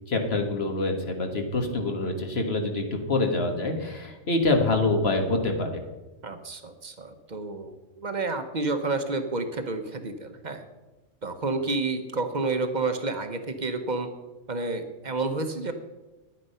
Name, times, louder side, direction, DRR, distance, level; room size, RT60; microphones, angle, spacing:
voice 1, 0.1-5.8, left 2 dB, 50° left, 4 dB, 1.7 m, -26 dB
voice 2, 6.2-10.6 11.2-14.1 14.5-15.7, right 3 dB, 40° right, 7 dB, 0.9 m, -30 dB
11.0 x 9.3 x 5.5 m, 1.1 s
omnidirectional pair, 1.3 m